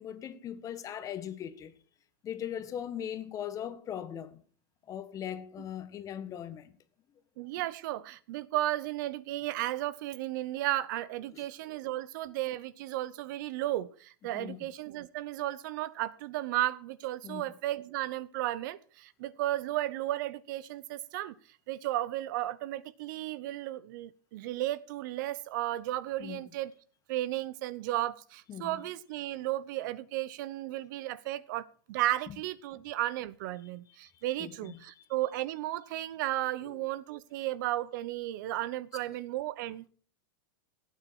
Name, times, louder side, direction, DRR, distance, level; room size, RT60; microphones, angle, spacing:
voice 1, 0.0-1.7 2.2-4.4 4.9-6.7 11.3-11.4 14.3-14.6 17.2-17.5 26.2-26.4 28.5-28.8 34.4-34.8 36.7-36.8, left 9 dB, 30° left, 1.4 m, -39 dB
voice 2, 7.4-21.3 21.7-26.7 27.1-39.9, right 15 dB, 60° right, 0.8 m, -34 dB
16.0 x 9.2 x 4.6 m
supercardioid pair, 130°, 11 cm